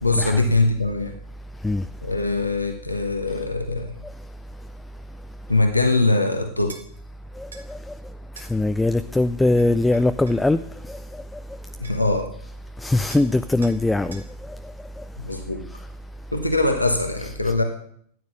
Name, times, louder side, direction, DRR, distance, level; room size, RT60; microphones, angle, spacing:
voice 1, 0.0-1.2 2.0-4.0 5.5-6.8 11.8-12.3 15.2-15.7 16.3-17.6, left 2 dB, 85° left, 1.2 m, -22 dB
sound 1, 6.7-6.9 7.5-7.7 8.4-8.5 9.6-10.5 11.5-11.6 11.8-12.2 13.1-13.3 13.6-13.8 14.1-14.3, right 4 dB, 75° right, 1.6 m, -44 dB
voice 2, 7.4-7.8 8.4-10.6 10.9-11.0 12.8-14.2, left 2 dB, 5° left, 0.4 m, -21 dB
13.0 x 9.7 x 6.4 m
figure-of-eight pair, 90°, 0 cm